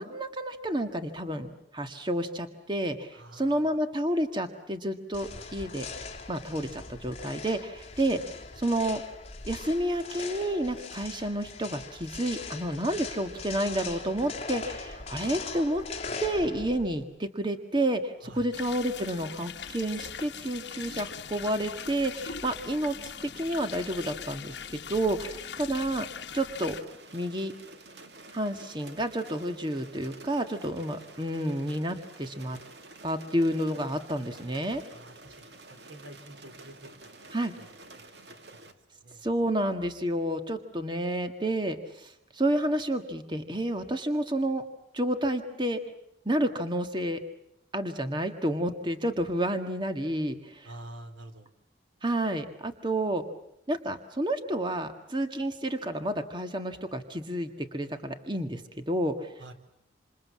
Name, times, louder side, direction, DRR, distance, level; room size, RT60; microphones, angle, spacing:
voice 1, 0.0-1.5 1.7-5.9 6.3-8.2 8.6-9.0 9.5-15.8 16.2-26.1 26.3-26.8 27.1-27.5 28.3-32.6 33.0-34.8 37.3-37.5 39.2-44.6 44.9-45.8 46.3-47.2 47.7-50.7 52.0-53.2 53.7-59.3, right 1 dB, 25° right, 7 dB, 1.7 m, -30 dB
voice 2, 3.1-3.8 18.2-18.5 34.9-37.3 37.6-39.2 50.6-51.5 59.4-59.5, right 1 dB, 90° right, 7 dB, 3.8 m, -49 dB
sound 1, 5.1-17.0, left 4 dB, 35° left, 3.0 m, -41 dB
sound 2, 18.5-26.8, left 7 dB, 65° left, 1.2 m, -41 dB
sound 3, 26.6-38.7, right 2 dB, 65° right, 2.4 m, -50 dB
28.0 x 27.5 x 7.5 m, 0.82 s
head